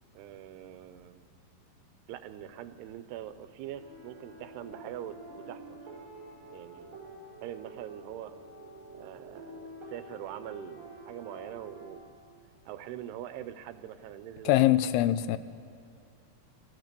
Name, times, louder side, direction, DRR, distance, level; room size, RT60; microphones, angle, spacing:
voice 1, 0.1-1.3 2.1-5.8 6.5-7.1 7.4-8.3 9.0-12.1 12.7-15.0, right 11 dB, 90° right, 2.9 m, -43 dB
sound 1, 3.8-11.9, right 1 dB, 45° right, 6.7 m, -48 dB
voice 2, 14.5-15.4, left 14 dB, 85° left, 2.6 m, -23 dB
28.0 x 18.5 x 6.8 m
omnidirectional pair, 4.6 m